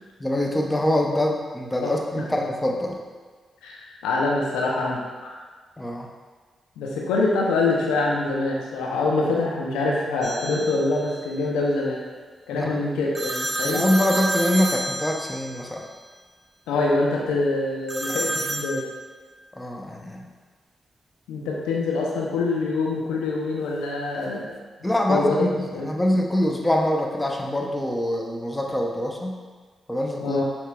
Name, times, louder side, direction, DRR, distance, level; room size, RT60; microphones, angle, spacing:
voice 1, 0.2-3.0 5.8-6.1 12.5-12.8 13.6-15.8 19.6-20.3 24.8-29.4 29.9-30.4, left 1 dB, 20° left, 1 dB, 0.6 m, -24 dB
voice 2, 3.6-5.4 6.8-12.0 12.5-13.8 16.7-18.8 21.3-24.5 25.1-25.9 30.2-30.4, left 3 dB, 85° left, -2 dB, 0.5 m, -25 dB
sound 1, 10.2-11.0 13.1-15.8 17.9-18.7, right 2 dB, 25° right, 0.5 m, -29 dB
4.2 x 2.9 x 2.3 m, 1.5 s
hypercardioid pair, 40°, 0 cm